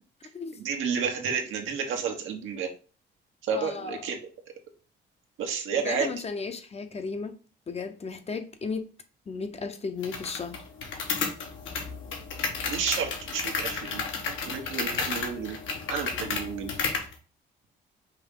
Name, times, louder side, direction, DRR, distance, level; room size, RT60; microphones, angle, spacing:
voice 1, 0.6-2.7 3.4-4.2 5.4-6.1 12.7-14.0 14.4-15.6 15.9-16.7, right 6 dB, 85° right, 1.1 m, -31 dB
voice 2, 3.5-4.1 5.7-7.4 7.7-8.9 9.3-10.6, left 4 dB, 30° left, 0.7 m, -35 dB
sound 1, 10.0-17.1, left 5 dB, 75° left, 1.2 m, -32 dB
5.4 x 2.7 x 3.6 m
cardioid pair, 90°, 20 cm